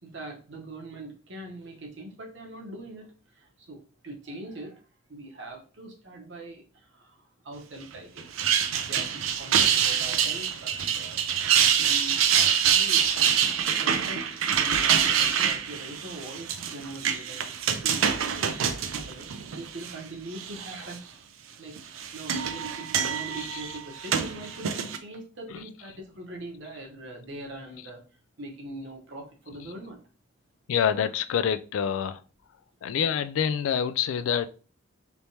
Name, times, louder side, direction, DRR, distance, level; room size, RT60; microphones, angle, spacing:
voice 1, 0.0-4.8 5.1-8.3 8.9-11.2 11.8-13.0 13.8-21.0 21.6-28.0 28.4-30.0 30.9-31.1, right 2 dB, 60° right, 1.0 m, -42 dB
sound 1, 8.2-19.9 20.4-20.9 21.8-25.0, right 8 dB, 85° right, 0.4 m, -25 dB
voice 2, 30.7-32.2 32.8-34.5, left 8 dB, 80° left, 0.3 m, -26 dB
3.4 x 3.0 x 2.7 m
head